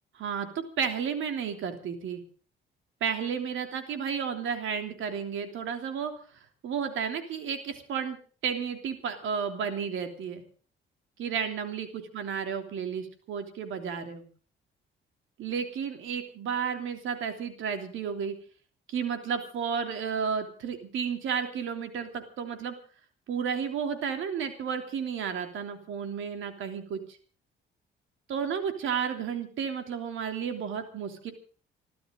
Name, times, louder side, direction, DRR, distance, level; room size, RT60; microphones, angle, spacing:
voice 1, 0.1-0.5 0.8-2.2 3.0-6.1 6.6-8.2 8.4-10.4 11.2-14.2 15.4-18.3 18.9-22.7 23.3-27.0 28.3-31.3, right 7 dB, 75° right, 6 dB, 3.2 m, -32 dB
26.5 x 13.0 x 3.9 m, 0.41 s
cardioid pair, 90°, 20 cm